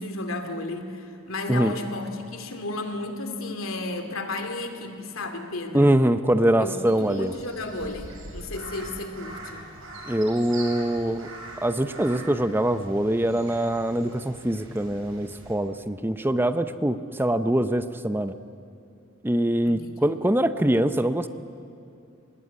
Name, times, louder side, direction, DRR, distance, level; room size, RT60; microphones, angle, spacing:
voice 1, 0.0-5.9 6.6-9.7 19.6-20.1, left 2 dB, 90° left, 6 dB, 2.5 m, -33 dB
voice 2, 5.7-7.3 10.1-11.3 11.6-18.3 19.2-21.3, right 1 dB, 10° right, 11 dB, 0.7 m, -23 dB
Crow, 6.7-15.5, right 2 dB, 75° right, 6.4 m, -43 dB
24.5 x 20.0 x 9.6 m, 2.6 s
head